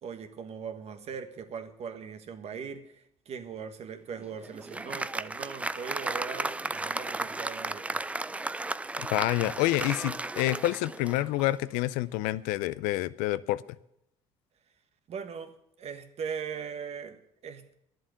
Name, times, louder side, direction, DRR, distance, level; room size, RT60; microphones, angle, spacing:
voice 1, 0.0-8.0 15.1-17.7, right 6 dB, 50° right, 9 dB, 1.5 m, -40 dB
Applause, 4.1-11.7, right 2 dB, 10° right, 0.4 m, -35 dB
voice 2, 9.1-13.6, left 17 dB, 80° left, 18 dB, 0.5 m, -28 dB
10.5 x 7.6 x 9.1 m, 0.78 s
supercardioid pair, 80°, 13 cm